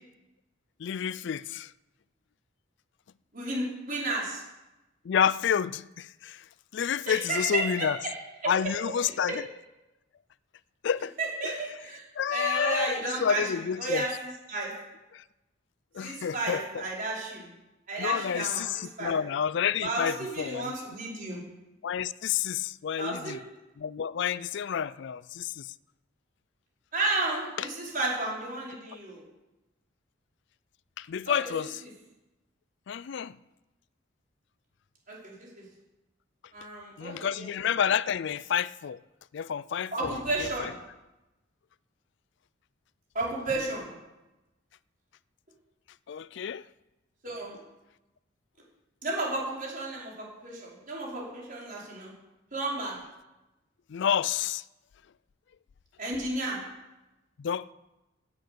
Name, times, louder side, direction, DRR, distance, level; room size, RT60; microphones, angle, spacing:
voice 1, 0.8-1.7 5.0-6.4 6.7-8.0 8.5-9.4 10.8-11.1 11.4-11.6 12.2-14.0 15.1-15.2 15.9-16.8 18.0-20.7 21.8-23.4 23.8-25.7 27.6-27.7 31.0-31.8 32.9-33.4 37.0-39.0 39.3-40.7 46.1-46.6 53.9-54.6 57.4-57.7, left 8 dB, 65° left, 0.4 m, -29 dB
voice 2, 3.3-4.4 7.1-8.2 8.4-8.5 11.2-12.0 12.3-13.4 13.8-14.7 16.0-17.4 17.9-19.1 19.8-21.4 23.0-23.4 26.9-29.2 31.3-31.5 35.1-35.6 36.5-37.5 39.9-40.7 43.1-43.9 47.2-47.6 49.0-52.1 52.5-53.0 56.0-56.6, right 2 dB, 45° right, 5.3 m, -32 dB
17.0 x 8.8 x 6.9 m
head